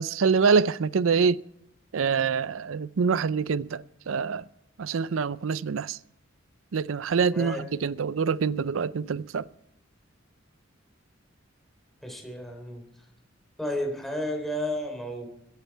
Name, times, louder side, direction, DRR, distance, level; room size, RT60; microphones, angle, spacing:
voice 1, 0.0-1.4 1.9-4.4 4.8-6.0 6.7-9.4, right 5 dB, 85° right, 0.5 m, -25 dB
voice 2, 12.0-12.8 13.6-15.3, left 1 dB, ahead, 3.3 m, -32 dB
22.0 x 10.5 x 4.6 m
head